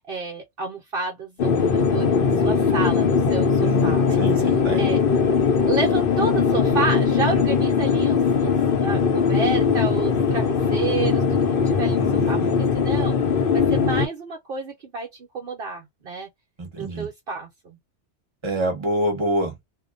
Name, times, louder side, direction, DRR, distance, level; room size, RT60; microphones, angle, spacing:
voice 1, 0.0-4.2 4.8-5.0 5.6-13.2 13.5-16.3 16.7-17.8, right 4 dB, 55° right, 0.9 m, -30 dB
sound 1, 1.4-14.1, left 5 dB, 60° left, 0.7 m, -20 dB
voice 2, 3.6-4.9 12.0-12.5 16.6-17.1 18.4-19.7, right 1 dB, 25° right, 1.1 m, -27 dB
2.7 x 2.2 x 2.4 m
omnidirectional pair, 1.2 m